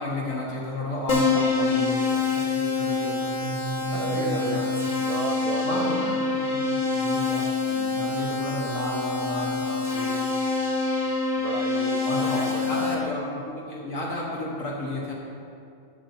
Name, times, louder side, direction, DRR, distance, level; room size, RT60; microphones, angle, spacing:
voice 1, 0.0-4.7 5.6-10.3 12.0-15.1, left 2 dB, 60° left, -4 dB, 1.5 m, -32 dB
Keyboard (musical), 1.1-12.9, left 4 dB, 25° left, 1.0 m, -26 dB
voice 2, 1.1-1.7 3.9-4.6 5.0-5.9 11.4-12.9, right 6 dB, 75° right, 4 dB, 1.1 m, -33 dB
sound 1, 3.3-6.1, equal, 50° right, 0.7 m, -36 dB
12.5 x 7.2 x 4.2 m, 2.5 s
omnidirectional pair, 1.6 m